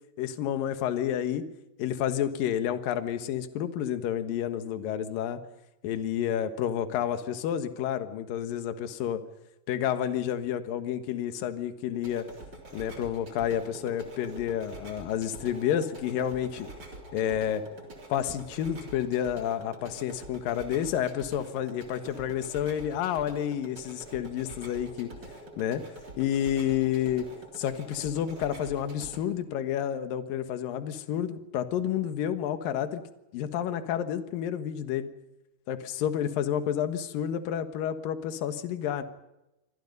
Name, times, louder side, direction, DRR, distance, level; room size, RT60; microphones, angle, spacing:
voice 1, 0.2-1.4 1.8-5.4 5.8-9.2 9.7-12.2 12.7-16.7 17.1-17.6 18.1-25.1 25.6-25.8 26.2-27.3 27.6-33.0 33.3-35.1 35.7-39.0, left 10 dB, 65° left, 9 dB, 2.7 m, -30 dB
sound 1, 11.9-29.2, right 2 dB, 25° right, 3.7 m, -46 dB
27.5 x 24.5 x 5.4 m, 0.94 s
omnidirectional pair, 5.1 m